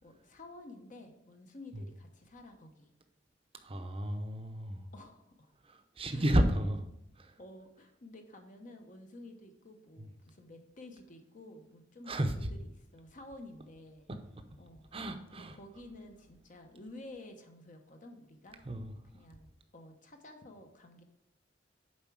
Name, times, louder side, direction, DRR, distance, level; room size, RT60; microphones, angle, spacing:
voice 1, 0.0-2.9 4.9-5.5 6.0-6.4 6.6-6.7 7.4-14.1 14.6-18.6 19.1-19.5 19.7-21.0, left 1 dB, 45° left, 5 dB, 0.9 m, -52 dB
voice 2, 3.6-4.8 5.6-6.8 7.2-7.4 10.0-10.1 12.1-12.3 14.9-15.6 18.6-18.9, equal, 30° right, 6 dB, 0.7 m, -32 dB
7.3 x 4.7 x 4.7 m, 0.82 s
head